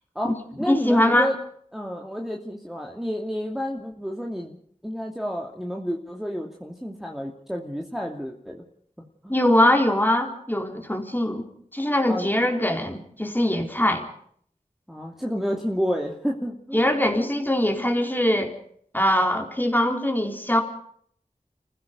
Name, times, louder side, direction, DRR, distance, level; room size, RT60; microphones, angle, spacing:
voice 1, 0.1-1.4 1.7-4.6 4.8-8.6 9.2-9.3 12.1-12.3 14.9-17.0, equal, 5° right, 0 dB, 2.7 m, -30 dB
voice 2, 0.7-1.3 9.3-11.5 11.7-14.0 16.7-18.5 18.9-20.6, left 1 dB, 15° left, 3 dB, 4.3 m, -22 dB
30.0 x 15.5 x 5.5 m, 0.62 s
wide cardioid pair, 45°, 14 cm